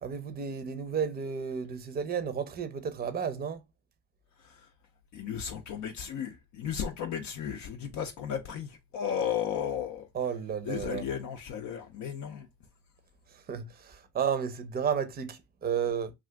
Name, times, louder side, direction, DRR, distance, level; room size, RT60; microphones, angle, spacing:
voice 1, 0.0-3.6 10.1-11.0 13.3-16.1, right 7 dB, 25° right, 0.6 m, -32 dB
voice 2, 5.1-10.1 10.7-12.5, left 8 dB, 55° left, 0.5 m, -34 dB
2.4 x 2.4 x 3.3 m
supercardioid pair, 80°, 36 cm